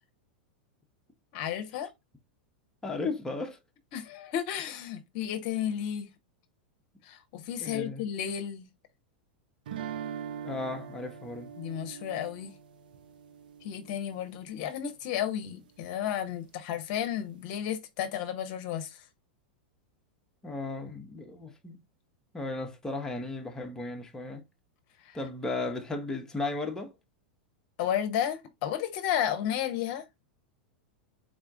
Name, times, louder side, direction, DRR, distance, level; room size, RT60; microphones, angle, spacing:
voice 1, 1.3-1.9 3.9-6.1 7.0-8.7 11.6-12.5 13.6-19.0 25.0-25.2 27.8-30.0, left 10 dB, 50° left, 0.7 m, -33 dB
voice 2, 2.8-3.6 7.6-8.0 10.4-11.5 20.4-21.8 22.3-24.4 25.1-26.9, left 3 dB, 10° left, 0.8 m, -35 dB
sound 1, 9.7-14.6, right 8 dB, 70° right, 0.4 m, -42 dB
3.9 x 2.4 x 3.5 m
hypercardioid pair, 95°, 5 cm